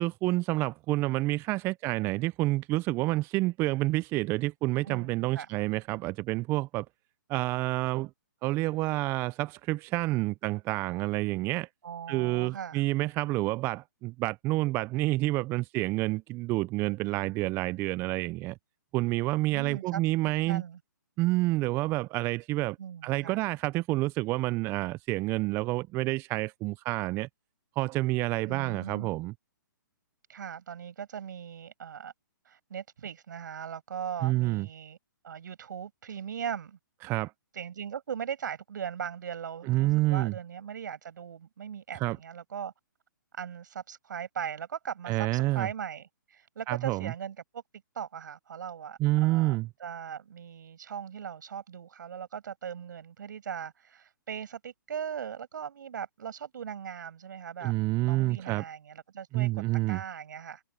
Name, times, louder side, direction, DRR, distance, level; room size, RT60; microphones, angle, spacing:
voice 1, 0.0-6.9 7.3-8.1 8.4-11.7 12.1-18.6 18.9-20.6 21.2-22.8 23.0-27.3 27.8-29.3 34.2-34.7 37.0-37.3 39.7-40.3 42.0-42.2 45.1-45.7 46.7-47.1 49.0-49.7 57.6-58.6 59.3-60.0, right 19 dB, 20° right, 0.4 m, -28 dB
voice 2, 4.8-5.5 11.8-12.8 19.5-20.8 22.8-23.4 28.5-29.1 30.3-32.1 32.5-35.0 35.2-36.8 37.5-42.7 43.4-47.6 48.0-57.7 58.0-60.6, right 8 dB, 65° right, 6.9 m, -39 dB
hypercardioid pair, 135°, 11 cm